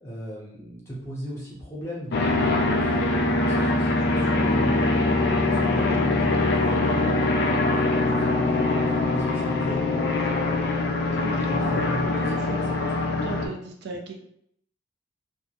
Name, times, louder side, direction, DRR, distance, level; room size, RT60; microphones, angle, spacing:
voice 1, 0.0-4.9 5.4-10.4 10.7-12.6 13.1-13.3, equal, 15° left, -6 dB, 0.7 m, -37 dB
sound 1, 2.1-13.5, left 2 dB, 55° left, 0.3 m, -23 dB
voice 2, 11.1-12.7 13.2-14.1, right 3 dB, 60° right, 2 dB, 0.3 m, -36 dB
2.1 x 2.0 x 2.8 m, 0.71 s
head